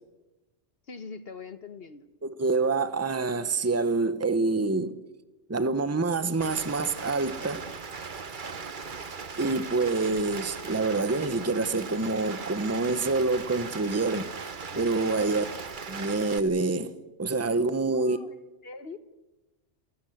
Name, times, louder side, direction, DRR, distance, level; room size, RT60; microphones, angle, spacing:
voice 1, 0.9-2.1 15.1-15.5 17.8-19.0, left 4 dB, 55° left, 1.3 m, -43 dB
voice 2, 2.2-5.0 5.5-7.6 9.4-15.4 15.9-18.2, right 3 dB, 15° right, 0.9 m, -27 dB
Rain, 6.4-16.4, right 5 dB, 45° right, 1.2 m, -38 dB
28.0 x 17.5 x 7.8 m
omnidirectional pair, 1.3 m